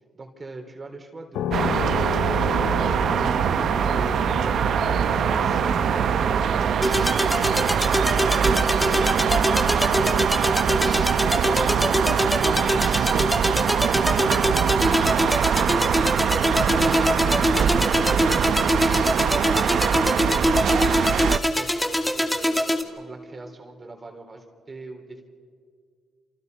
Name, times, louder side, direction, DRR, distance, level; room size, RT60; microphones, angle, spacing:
voice 1, 0.1-9.2 19.1-21.7 22.0-25.2, right 2 dB, 30° right, 3 dB, 3.9 m, -42 dB
sound 1, 1.3-16.0, left 11 dB, 80° left, 0.9 m, -36 dB
sound 2, 1.5-21.4, right 8 dB, 65° right, 0.8 m, -23 dB
sound 3, 6.8-22.8, left 1 dB, 5° left, 2.5 m, -24 dB
28.5 x 28.0 x 5.5 m, 2.1 s
cardioid pair, 90°, 0 cm